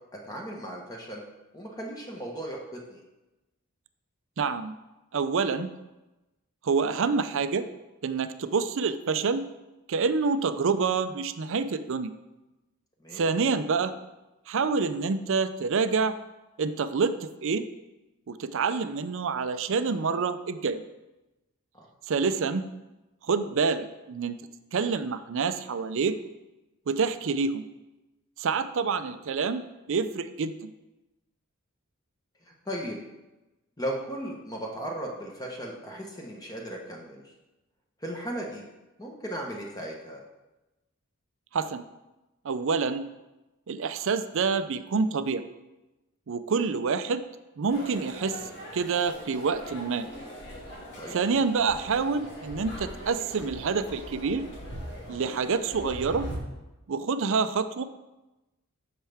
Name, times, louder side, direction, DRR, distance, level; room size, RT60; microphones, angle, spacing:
voice 1, 0.1-1.2 1.5-3.0 13.0-13.2 21.7-21.9 32.6-33.0 33.8-37.2 38.0-38.6 39.0-40.2 51.0-51.2, right 1 dB, 15° left, -1 dB, 1.1 m, -36 dB
voice 2, 4.4-4.7 5.1-5.7 6.6-7.6 8.0-9.4 9.9-12.1 13.1-13.9 14.5-16.2 16.6-17.6 18.3-20.8 22.1-22.6 23.3-24.4 24.7-26.2 26.9-27.7 28.4-29.6 29.9-30.7 41.5-41.8 42.4-43.0 43.7-45.4 46.3-47.2 47.6-48.4 48.7-50.1 51.1-54.5 55.1-56.3 56.9-57.8, right 5 dB, 60° right, 12 dB, 0.5 m, -27 dB
sound 1, 47.7-56.4, equal, 55° left, 2.3 m, -41 dB
10.0 x 6.6 x 3.5 m, 1.0 s
head